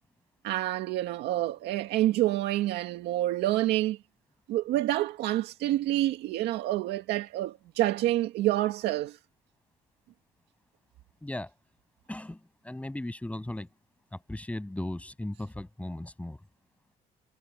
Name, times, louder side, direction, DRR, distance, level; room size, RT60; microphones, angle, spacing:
voice 1, 0.4-4.0 4.5-9.2, right 15 dB, 85° right, 2.1 m, -28 dB
voice 2, 11.2-11.5 12.1-13.7 14.1-16.4, left 1 dB, 10° left, 7.1 m, -37 dB
cardioid pair, 110°, 17 cm